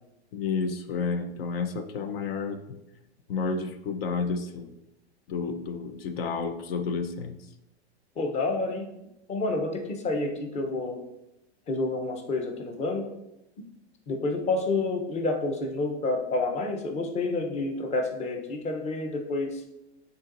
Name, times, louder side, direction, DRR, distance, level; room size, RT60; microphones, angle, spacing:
voice 1, 0.3-2.8 3.3-4.8 5.3-7.4, left 4 dB, 60° left, 8 dB, 0.7 m, -31 dB
voice 2, 8.2-8.9 9.3-11.0 11.7-13.1 14.1-19.6, left 2 dB, 20° left, 4 dB, 0.8 m, -29 dB
9.4 x 3.9 x 2.6 m, 0.90 s
hypercardioid pair, 135°, 34 cm